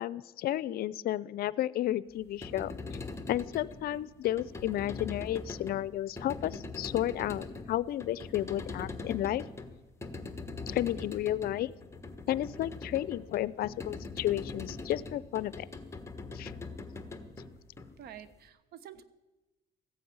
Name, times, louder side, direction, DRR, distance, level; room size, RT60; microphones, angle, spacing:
voice 1, 0.0-2.7 3.3-9.4 10.7-11.7 12.3-15.7 16.3-16.5, left 13 dB, 65° left, 19 dB, 0.5 m, -32 dB
sound 1, 2.2-18.4, left 3 dB, 15° left, 1.4 m, -42 dB
voice 2, 18.0-19.0, right 10 dB, 70° right, 14 dB, 1.2 m, -48 dB
15.0 x 9.3 x 8.7 m, 1.1 s
cardioid pair, 110°, 17 cm